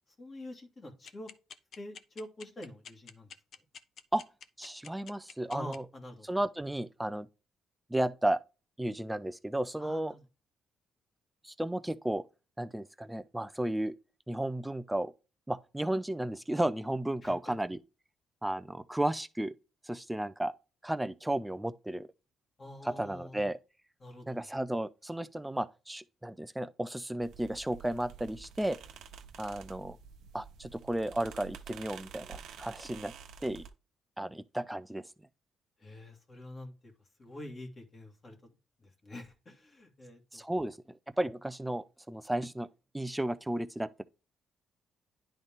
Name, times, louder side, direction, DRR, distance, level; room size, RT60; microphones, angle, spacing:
voice 1, 0.2-1.3 1.8-3.3 5.5-6.3 9.8-10.2 17.2-17.3 22.6-23.5 24.0-24.4 35.8-36.9 37.2-38.4 38.8-40.4, left 1 dB, 35° left, 2.0 m, -46 dB
sound 1, 1.1-5.8, left 7 dB, 60° left, 0.7 m, -47 dB
voice 2, 4.6-5.9 6.2-7.3 7.9-8.4 8.8-10.1 11.4-12.2 12.6-13.9 14.3-15.1 15.5-17.8 18.4-19.5 19.8-20.5 20.8-22.1 22.8-23.6 24.3-28.8 29.4-30.0 30.3-33.1 33.4-33.7 34.2-35.0 40.3-42.7 42.9-44.0, right 1 dB, 5° right, 0.4 m, -33 dB
sound 2, 27.2-33.7, right 7 dB, 80° right, 1.0 m, -49 dB
10.0 x 4.0 x 3.6 m
cardioid pair, 90°, 0 cm